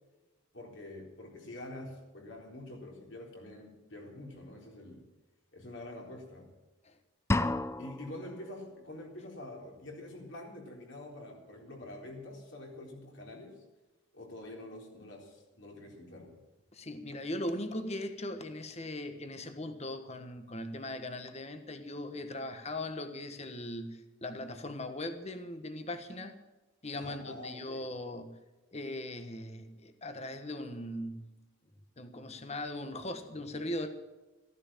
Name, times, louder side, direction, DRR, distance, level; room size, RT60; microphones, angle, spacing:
voice 1, 0.5-5.0 5.5-6.5 7.4-13.6 14.1-16.4 26.9-27.9, left 1 dB, 60° left, 0 dB, 3.9 m, -46 dB
sound 1, 7.3-8.3, left 2 dB, 15° left, 0.5 m, -30 dB
voice 2, 16.7-26.4 26.8-28.4 28.7-31.2 32.0-33.9, left 1 dB, 30° left, 8 dB, 1.3 m, -39 dB
15.0 x 11.0 x 7.4 m, 1.1 s
head